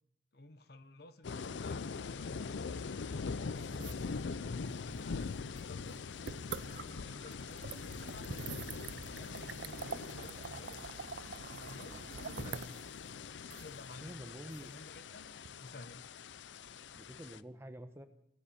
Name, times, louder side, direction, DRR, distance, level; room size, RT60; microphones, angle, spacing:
voice 1, 0.3-2.4 3.0-4.0 4.4-6.0 6.5-8.3 8.9-10.8 11.6-12.0 12.3-12.8 13.6-15.3 15.6-16.1, left 2 dB, 55° left, 11 dB, 1.0 m, -53 dB
sound 1, 1.2-17.4, left 5 dB, 75° left, 0.5 m, -43 dB
sound 2, 3.6-15.5, right 5 dB, 60° right, 0.5 m, -47 dB
voice 2, 14.0-14.7 16.9-18.1, equal, 15° right, 8 dB, 1.0 m, -48 dB
16.5 x 8.7 x 8.9 m, 0.78 s
head